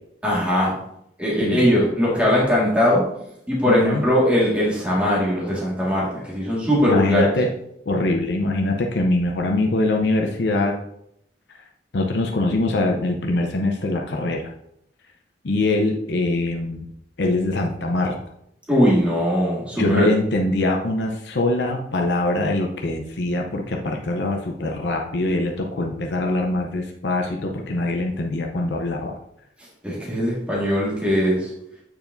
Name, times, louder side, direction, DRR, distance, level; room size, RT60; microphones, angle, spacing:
voice 1, 0.2-0.8 1.2-3.0 3.5-7.3 18.7-20.1 29.8-31.5, equal, 10° right, -7 dB, 1.7 m, -20 dB
voice 2, 3.6-4.0 6.9-7.5 7.9-10.7 11.9-14.5 15.4-16.9 17.2-18.1 19.8-29.1, left 2 dB, 75° left, 2 dB, 0.6 m, -23 dB
8.7 x 4.7 x 2.6 m, 0.76 s
head